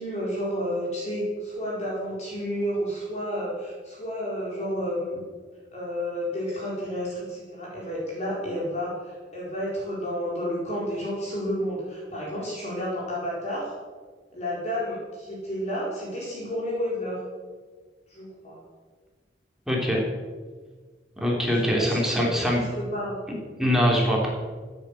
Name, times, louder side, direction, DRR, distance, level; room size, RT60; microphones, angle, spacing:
voice 1, 0.0-5.2 5.7-13.7 14.3-17.2 18.1-18.6 21.8-22.4 22.7-23.2, equal, 40° left, -5 dB, 4.5 m, -31 dB
voice 2, 19.7-20.0 21.2-22.6 23.3-24.3, equal, 5° right, -3 dB, 3.3 m, -23 dB
16.5 x 9.2 x 8.6 m, 1.5 s
head